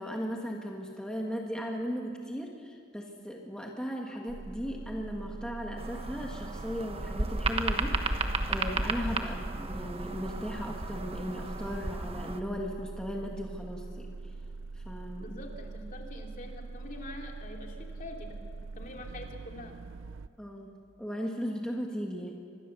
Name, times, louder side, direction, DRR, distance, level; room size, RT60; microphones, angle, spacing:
voice 1, 0.0-14.1 14.7-15.3 20.4-22.3, equal, 5° left, 0 dB, 1.7 m, -37 dB
sound 1, 4.3-20.3, right 3 dB, 80° right, 0.5 m, -43 dB
sound 2, 5.8-12.4, right 2 dB, 30° right, 1.3 m, -33 dB
voice 2, 15.2-18.3 18.7-19.8, left 1 dB, 45° left, 1 dB, 2.8 m, -45 dB
25.0 x 20.0 x 7.0 m, 2.3 s
head